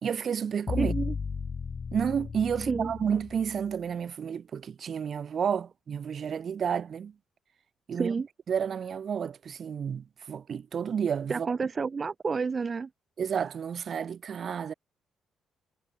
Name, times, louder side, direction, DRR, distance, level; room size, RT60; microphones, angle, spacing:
voice 1, 0.0-0.9 1.9-7.2 7.9-8.1 8.5-11.5 13.2-14.7, right 7 dB, 50° right, 1.7 m, -31 dB
sound 1, 0.7-3.8, left 5 dB, 40° left, 2.7 m, -35 dB
voice 2, 0.8-1.1 2.6-2.9 7.9-8.3 11.3-12.9, right 5 dB, 35° right, 1.2 m, -30 dB
cardioid pair, 90°, 0 cm